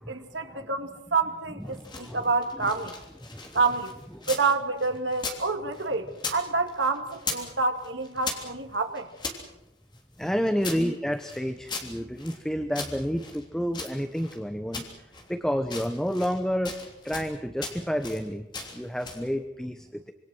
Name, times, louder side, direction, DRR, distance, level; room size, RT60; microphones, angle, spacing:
voice 1, 0.1-3.0 3.5-3.9 4.3-9.1, right 4 dB, 75° right, 6 dB, 2.2 m, -28 dB
sound 1, 1.6-4.5 4.8-6.4 6.7-7.5 7.8-9.4 9.9-12.4 12.7-14.4 14.7-15.3 15.6-16.4 16.6-17.3 17.6-18.2 18.5-19.3, left 3 dB, 25° left, 3.2 m, -38 dB
voice 2, 1.7-2.2 3.2-3.4 4.2-4.3 10.2-14.9 15.3-16.8 17.0-18.5 18.7-20.1, equal, 5° left, 8 dB, 0.9 m, -30 dB
26.5 x 24.0 x 6.2 m, 0.97 s
head